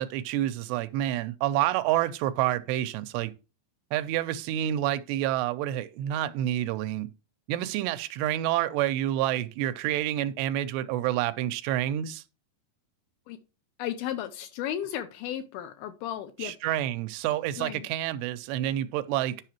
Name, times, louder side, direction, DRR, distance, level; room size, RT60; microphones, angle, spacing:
voice 1, 0.0-3.3 3.9-7.1 7.5-12.2 16.4-19.4, right 13 dB, 90° right, 2.8 m, -28 dB
voice 2, 13.8-16.5 17.6-17.9, left 11 dB, 80° left, 2.3 m, -34 dB
10.5 x 5.7 x 3.0 m
omnidirectional pair, 4.9 m